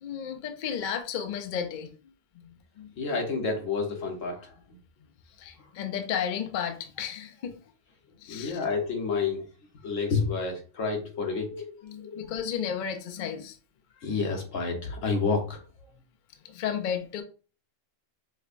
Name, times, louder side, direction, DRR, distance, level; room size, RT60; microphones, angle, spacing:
voice 1, 0.0-1.9 2.8-2.9 5.4-7.5 8.2-8.6 11.8-13.6 16.4-17.2, left 8 dB, 65° left, 0.5 m, -33 dB
voice 2, 3.0-4.8 8.3-9.5 9.8-12.3 14.0-15.6, left 4 dB, 80° left, 1.2 m, -30 dB
5.1 x 2.1 x 2.5 m
omnidirectional pair, 1.3 m